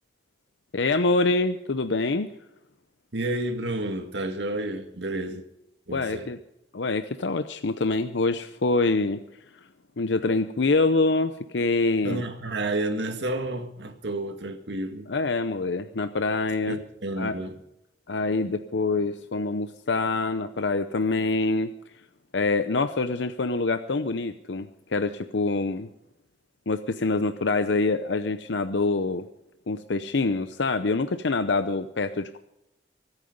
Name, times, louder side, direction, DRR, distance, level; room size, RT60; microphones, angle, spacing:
voice 1, 0.7-2.3 5.9-6.4 6.7-9.2 10.0-12.2 15.1-16.8 17.2-17.3 18.1-21.7 22.3-25.9 26.7-29.3 29.7-32.4, left 3 dB, 80° left, 0.7 m, -25 dB
voice 2, 3.1-5.4 5.9-6.3 12.0-15.1 16.7-17.6, right 2 dB, 75° right, 1.9 m, -30 dB
24.0 x 9.1 x 5.3 m
head